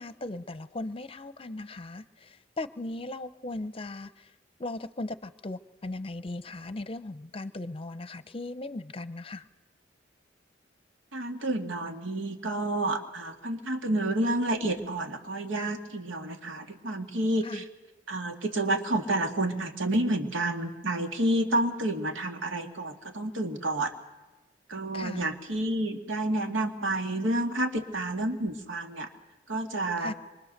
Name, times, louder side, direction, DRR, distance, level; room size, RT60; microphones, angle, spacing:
voice 1, 0.0-4.3 4.6-9.5 17.4-17.6 24.9-25.3 30.0-30.1, left 2 dB, 30° left, 13 dB, 0.8 m, -38 dB
voice 2, 11.1-17.6 18.1-23.9 24.7-29.1 29.5-30.1, right 1 dB, 90° right, 4 dB, 2.1 m, -29 dB
26.0 x 23.5 x 6.7 m, 1.1 s
head